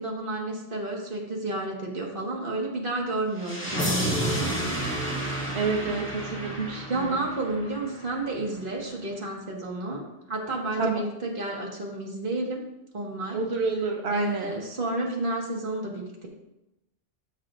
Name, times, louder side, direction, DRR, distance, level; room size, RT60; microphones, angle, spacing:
voice 1, 0.0-4.7 6.5-12.7 12.9-13.4 14.1-16.3, right 2 dB, 55° right, 0 dB, 1.8 m, -31 dB
sound 1, 3.4-8.3, equal, 10° left, 1.8 m, -30 dB
voice 2, 5.5-7.2 10.8-11.0 13.3-14.5, right 4 dB, 90° right, 2 dB, 1.1 m, -29 dB
13.0 x 6.6 x 2.5 m, 0.90 s
omnidirectional pair, 1.0 m